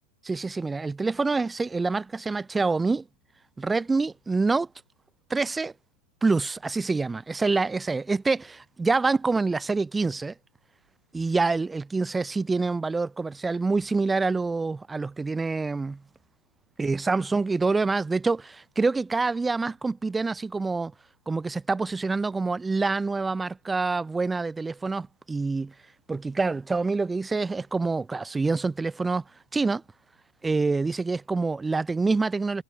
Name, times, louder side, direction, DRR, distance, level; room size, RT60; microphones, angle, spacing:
voice 1, 0.3-3.0 3.6-4.7 5.3-5.7 6.2-10.3 11.1-16.0 16.8-20.9 21.3-25.7 26.1-29.2 29.5-29.8 30.4-32.6, right 3 dB, 10° right, 0.8 m, -26 dB
figure-of-eight pair, 90°, 0 cm